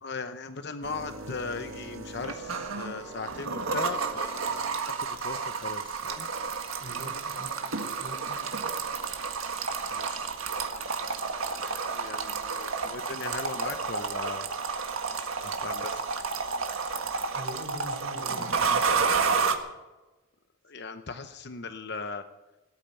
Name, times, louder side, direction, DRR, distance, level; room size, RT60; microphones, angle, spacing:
voice 1, 0.0-6.3 9.9-14.5 15.4-16.0 20.6-22.2, left 4 dB, 55° left, 9 dB, 0.8 m, -39 dB
sound 1, 0.8-19.6, right 5 dB, 85° right, 1.7 m, -31 dB
voice 2, 6.8-7.5 8.0-8.4 17.3-18.8, right 1 dB, 55° right, 0 dB, 5.9 m, -42 dB
19.0 x 8.6 x 9.0 m, 1.1 s
head